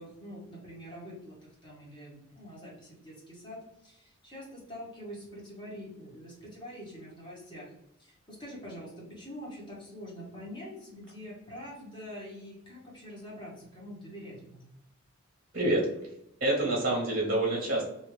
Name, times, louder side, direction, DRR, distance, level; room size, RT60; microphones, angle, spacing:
voice 1, 0.0-7.7 8.0-14.6, equal, 20° left, -6 dB, 1.2 m, -45 dB
voice 2, 15.5-16.1 16.4-17.8, right 1 dB, 40° right, -2 dB, 0.8 m, -27 dB
2.8 x 2.6 x 3.1 m, 0.83 s
head